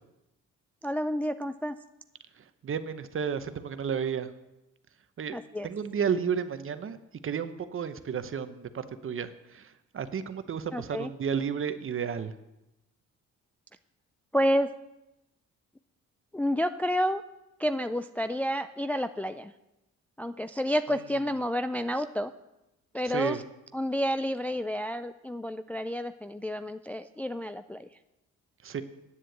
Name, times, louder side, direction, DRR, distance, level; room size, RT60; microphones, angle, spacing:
voice 1, 0.8-1.8 5.3-5.7 10.7-11.1 14.3-14.7 16.3-17.2 17.6-19.5 20.2-22.3 22.9-23.4 23.7-27.9, equal, 5° left, 10 dB, 0.3 m, -30 dB
voice 2, 2.6-4.3 5.2-5.4 5.6-7.0 7.2-12.3 23.1-23.4 28.6-28.8, right 7 dB, 45° right, 11 dB, 0.9 m, -32 dB
9.8 x 7.6 x 7.9 m, 0.94 s
cardioid pair, 90°, 30 cm